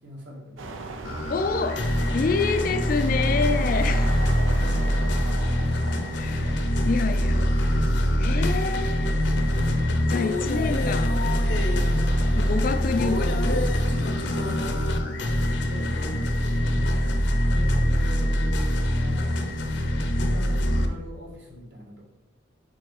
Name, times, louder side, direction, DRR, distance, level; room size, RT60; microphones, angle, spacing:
voice 1, 0.0-1.2 3.7-4.1 4.5-7.0 7.3-7.5 7.8-8.2 9.4-10.7 14.3-17.0 17.4-19.4 20.1-22.0, equal, 60° right, 1.7 m, -43 dB
sound 1, 0.6-20.1, right 2 dB, 85° right, 0.7 m, -41 dB
sound 2, 1.0-20.9, equal, 60° left, 0.7 m, -24 dB
voice 2, 1.3-4.2 6.1-7.5 8.2-9.1 10.1-11.3 12.3-13.7, left 4 dB, 45° left, 0.3 m, -27 dB
5.3 x 4.7 x 4.7 m
head